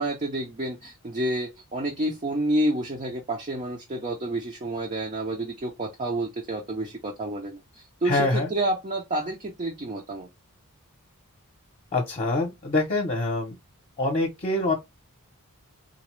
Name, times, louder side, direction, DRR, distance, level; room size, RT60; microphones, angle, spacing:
voice 1, 0.0-10.3, right 1 dB, 30° right, 0.6 m, -29 dB
voice 2, 8.0-8.5 11.9-13.6 14.0-14.8, left 2 dB, 30° left, 0.8 m, -25 dB
3.9 x 2.2 x 3.0 m
head